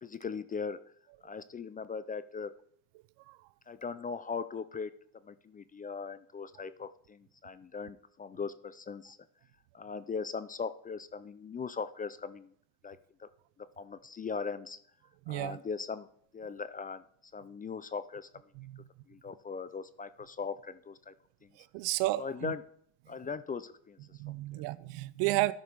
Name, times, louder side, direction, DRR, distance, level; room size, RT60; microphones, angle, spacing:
voice 1, 0.0-0.8 1.2-2.5 3.7-4.9 5.2-9.2 9.7-12.5 12.8-13.3 13.6-14.8 15.3-16.1 16.3-18.3 19.1-21.1 21.4-21.5 22.2-22.6 23.1-24.6, left 5 dB, 20° left, 14 dB, 0.3 m, -39 dB
voice 2, 15.3-15.6 18.6-18.7 21.6-22.5 24.2-25.5, right 18 dB, 80° right, 18 dB, 0.6 m, -32 dB
13.0 x 5.3 x 4.5 m, 0.64 s
supercardioid pair, 90°, 43 cm